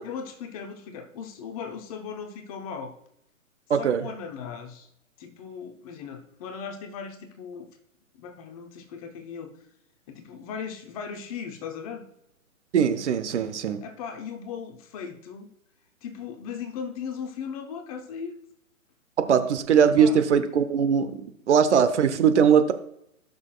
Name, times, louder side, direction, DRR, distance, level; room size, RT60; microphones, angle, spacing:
voice 1, 0.0-2.9 3.8-4.9 5.2-7.7 8.2-9.5 10.1-12.1 13.8-15.5 16.0-18.4 20.0-20.2, left 6 dB, 25° left, 6 dB, 0.8 m, -37 dB
voice 2, 3.7-4.0 12.7-13.8 19.2-22.7, right 7 dB, 55° right, 10 dB, 0.9 m, -21 dB
16.5 x 6.1 x 2.3 m, 0.77 s
figure-of-eight pair, 130°, 42 cm